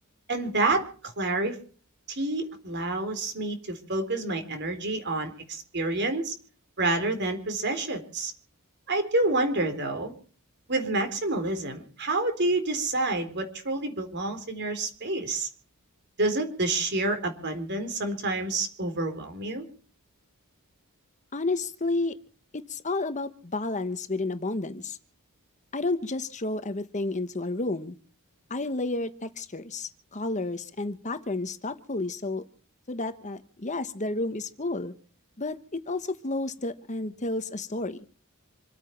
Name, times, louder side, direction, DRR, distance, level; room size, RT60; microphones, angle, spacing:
voice 1, 0.3-1.6 2.1-6.3 6.8-8.3 8.9-10.1 10.7-15.5 16.2-19.6, right 2 dB, 50° right, 7 dB, 4.0 m, -28 dB
voice 2, 21.3-22.1 22.7-25.0 25.7-27.9 28.5-32.4 32.9-34.9 35.4-38.0, left 2 dB, 35° left, 11 dB, 1.1 m, -31 dB
27.0 x 9.0 x 5.9 m, 0.41 s
head